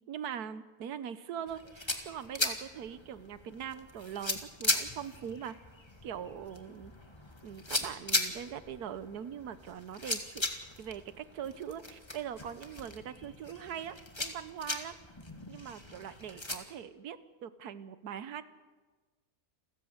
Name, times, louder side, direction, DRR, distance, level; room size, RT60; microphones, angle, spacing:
voice 1, 0.1-5.6 6.0-6.9 7.4-10.5 10.8-14.9 15.5-18.4, right 8 dB, 90° right, 13 dB, 1.4 m, -42 dB
sound 1, 1.5-16.6, left 2 dB, 20° left, 1.8 m, -38 dB
29.0 x 14.5 x 8.1 m, 1.3 s
omnidirectional pair, 1.6 m